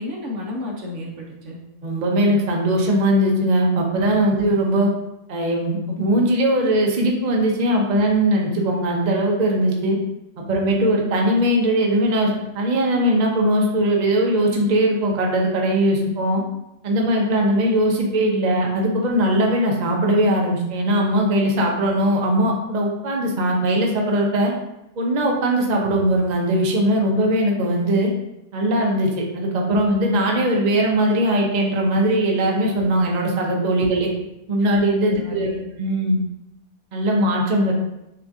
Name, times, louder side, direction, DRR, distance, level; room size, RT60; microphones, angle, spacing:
voice 1, 0.0-1.6 35.0-35.6, left 2 dB, 60° right, -1 dB, 1.1 m, -31 dB
voice 2, 1.8-4.9 5.3-10.0 10.4-16.4 16.8-24.5 25.0-28.1 28.5-34.1 34.5-35.5 35.8-36.2 36.9-37.7, right 1 dB, 45° right, -1 dB, 0.6 m, -20 dB
6.6 x 2.5 x 2.6 m, 0.87 s
omnidirectional pair, 1.5 m